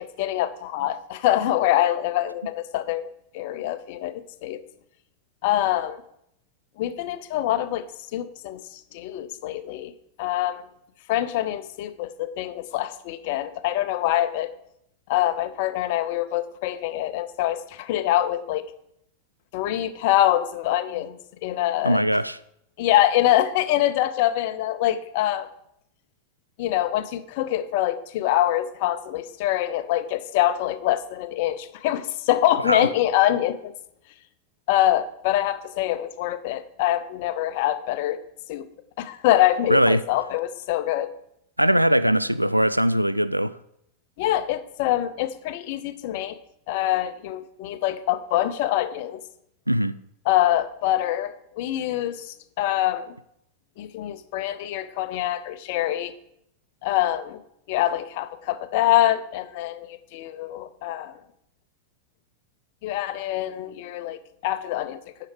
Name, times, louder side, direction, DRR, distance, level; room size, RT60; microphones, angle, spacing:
voice 1, 0.0-4.6 5.4-6.0 6.8-7.8 8.1-9.9 10.2-10.7 11.1-14.5 15.1-18.7 19.5-22.0 22.8-25.5 26.6-33.7 34.7-38.2 38.5-38.6 39.0-41.1 44.2-46.4 46.7-49.2 50.3-53.1 53.8-56.1 56.8-57.4 57.7-61.2 62.8-65.0, left 13 dB, 50° left, 0.6 m, -25 dB
voice 2, 21.8-22.4 32.7-32.9 39.7-40.0 41.6-43.5 49.7-50.0, equal, 90° right, 0.4 m, -20 dB
9.7 x 6.6 x 4.8 m
figure-of-eight pair, 90°, 0 cm